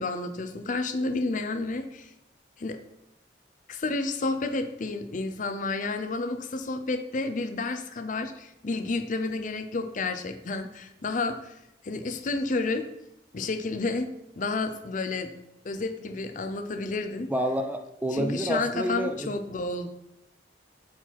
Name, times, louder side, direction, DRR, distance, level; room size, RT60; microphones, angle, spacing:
voice 1, 0.0-2.1 2.6-2.8 3.7-11.5 11.8-12.8 13.3-15.3 15.6-17.3 18.1-19.9, left 3 dB, 40° left, 8 dB, 0.5 m, -30 dB
voice 2, 17.3-19.3, right 1 dB, 10° right, 6 dB, 0.4 m, -29 dB
7.5 x 4.7 x 4.2 m, 0.84 s
head